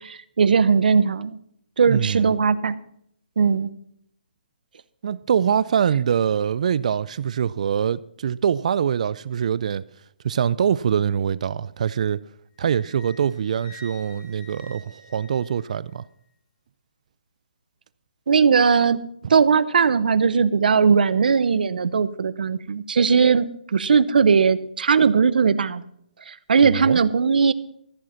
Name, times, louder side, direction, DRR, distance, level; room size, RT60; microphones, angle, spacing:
voice 1, 0.0-1.4 1.8-2.8 3.4-3.7 18.3-19.0 19.3-25.8 26.3-27.5, right 5 dB, 70° right, 0.8 m, -19 dB
voice 2, 1.9-2.3 5.0-9.8 10.2-12.2 12.6-16.0 19.2-19.3 26.6-27.0, right 8 dB, 45° right, 0.4 m, -24 dB
Wind instrument woodwind instrument, 12.6-16.1, left 1 dB, 25° left, 3.4 m, -48 dB
14.5 x 7.8 x 5.7 m
hypercardioid pair, 165°, 5 cm